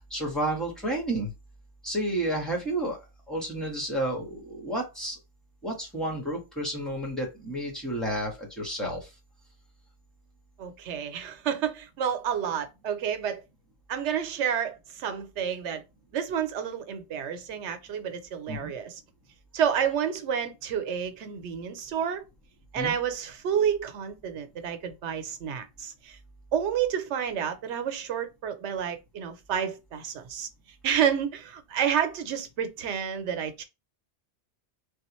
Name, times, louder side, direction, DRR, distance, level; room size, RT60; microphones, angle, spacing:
voice 1, 0.0-1.3 1.8-3.0 3.3-5.2 5.6-9.1 18.5-18.7 22.7-22.9, right 1 dB, ahead, 1.3 m, -31 dB
voice 2, 10.6-13.4 13.9-15.8 16.1-19.0 19.5-22.2 22.7-26.2 26.5-30.5 30.8-33.6, right 8 dB, 85° right, 1.0 m, -30 dB
3.4 x 2.5 x 3.0 m
omnidirectional pair, 1.1 m